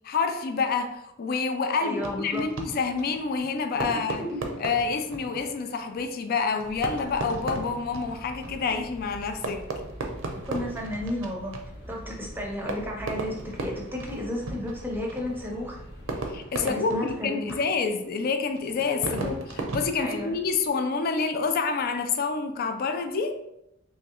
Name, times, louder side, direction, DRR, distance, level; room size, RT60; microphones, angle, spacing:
voice 1, 0.0-4.2 4.6-9.7 16.3-19.4 19.7-23.4, left 4 dB, 45° left, 7 dB, 0.3 m, -28 dB
voice 2, 1.8-2.5 3.8-4.5 10.5-11.6 11.9-15.8 16.6-17.6 19.0-19.4 20.0-20.3, left 1 dB, 10° right, -1 dB, 0.6 m, -33 dB
Fireworks, 2.0-20.8, right 2 dB, 65° right, 0.6 m, -37 dB
sound 1, 6.6-16.4, equal, 60° left, 0.9 m, -45 dB
3.6 x 3.0 x 2.9 m, 0.83 s
head